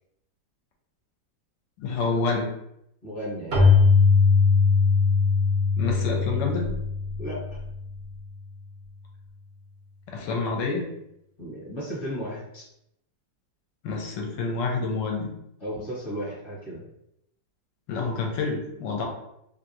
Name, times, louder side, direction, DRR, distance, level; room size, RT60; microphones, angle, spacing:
voice 1, 1.8-2.5 5.8-6.7 10.1-10.9 13.8-15.3 17.9-19.0, left 4 dB, 75° left, 1 dB, 1.2 m, -28 dB
voice 2, 3.0-3.7 7.2-7.6 11.4-12.7 15.6-16.8, equal, 35° left, -8 dB, 1.2 m, -34 dB
Keyboard (musical), 3.5-8.0, left 4 dB, 80° right, 0.5 m, -20 dB
3.0 x 2.6 x 2.7 m, 0.79 s
omnidirectional pair, 2.1 m